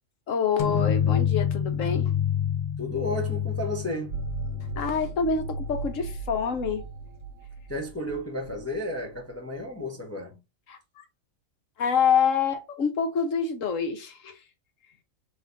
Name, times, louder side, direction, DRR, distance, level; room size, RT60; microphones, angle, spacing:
voice 1, 0.3-2.2 4.8-6.8 10.7-11.0 11.8-14.4, left 6 dB, 70° left, 1.3 m, -26 dB
sound 1, 0.6-6.1, left 9 dB, 50° left, 0.6 m, -28 dB
voice 2, 2.8-4.2 7.7-10.4, left 1 dB, 15° left, 0.7 m, -32 dB
sound 2, 4.1-9.6, right 5 dB, 65° right, 0.7 m, -37 dB
3.5 x 3.1 x 3.9 m
omnidirectional pair, 1.4 m